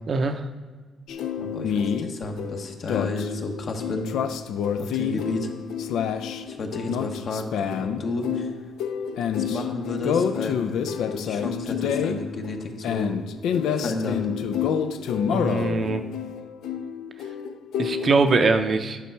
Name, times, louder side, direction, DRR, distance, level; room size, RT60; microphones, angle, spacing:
voice 1, 0.1-0.5 15.3-16.0 17.8-19.0, right 4 dB, 45° right, 8 dB, 0.6 m, -22 dB
sound 1, 1.1-18.5, left 7 dB, 80° left, 0.4 m, -28 dB
voice 2, 1.4-4.1 4.8-5.5 6.5-7.5 7.8-8.5 9.4-10.8 11.1-13.1 13.8-14.3, left 2 dB, 55° left, 4 dB, 1.0 m, -32 dB
10.5 x 5.4 x 4.6 m, 1.4 s
cardioid pair, 90°, 0 cm